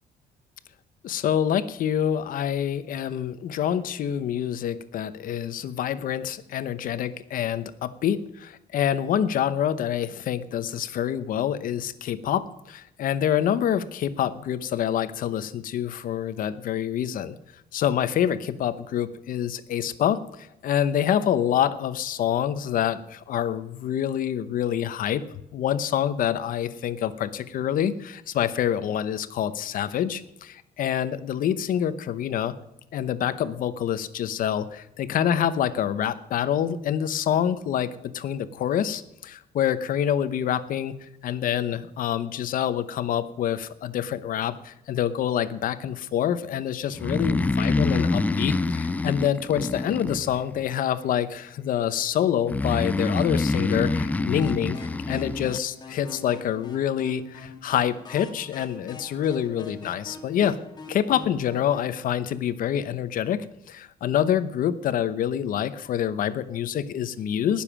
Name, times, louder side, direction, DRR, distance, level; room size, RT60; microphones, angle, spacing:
voice 1, 1.0-17.3 17.7-25.2 25.5-32.5 32.9-40.9 41.2-60.6 60.9-67.6, left 10 dB, 55° left, 14 dB, 0.9 m, -26 dB
Breathing, 46.9-50.7 52.5-55.6, left 3 dB, 10° left, 0.4 m, -26 dB
sound 1, 54.4-61.9, left 4 dB, 25° left, 1.5 m, -43 dB
19.0 x 7.2 x 6.1 m, 0.85 s
cardioid pair, 170°, 17 cm